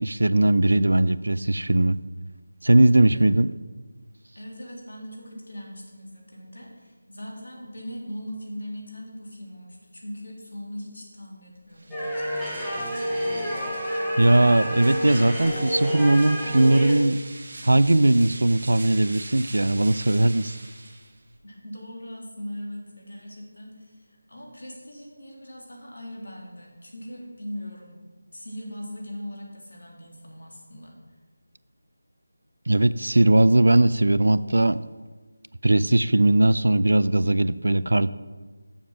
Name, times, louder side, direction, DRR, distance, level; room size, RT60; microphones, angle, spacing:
voice 1, 0.0-2.0 2.6-3.5 14.2-17.2 17.6-20.6 32.7-34.8 35.6-38.1, right 1 dB, 85° right, 16 dB, 0.4 m, -19 dB
voice 2, 4.3-12.8 21.4-28.0 28.3-31.0, equal, 80° left, -2 dB, 3.0 m, -40 dB
sound 1, 11.7-21.4, right 2 dB, 35° right, 1.0 m, -43 dB
sound 2, 11.9-16.9, equal, ahead, 0.7 m, -29 dB
7.2 x 6.9 x 5.9 m, 1.3 s
figure-of-eight pair, 180°, 0 cm